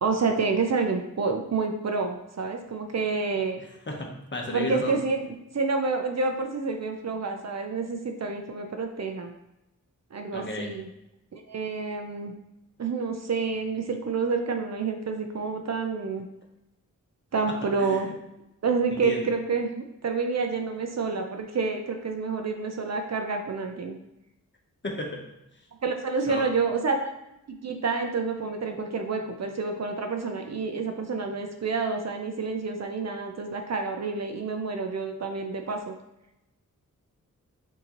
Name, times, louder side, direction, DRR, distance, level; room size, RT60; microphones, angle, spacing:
voice 1, 0.0-3.6 4.5-5.2 5.5-9.3 10.1-10.9 11.3-12.3 12.8-16.2 17.3-18.1 18.6-24.0 25.8-27.1 27.5-35.8, right 4 dB, 50° right, 4 dB, 0.6 m, -28 dB
voice 2, 3.6-4.9 10.3-10.7 17.5-18.0 18.9-19.3 24.8-25.2 26.3-26.4, left 1 dB, 35° left, 0 dB, 1.0 m, -33 dB
6.2 x 2.9 x 3.0 m, 0.90 s
wide cardioid pair, 70°, 34 cm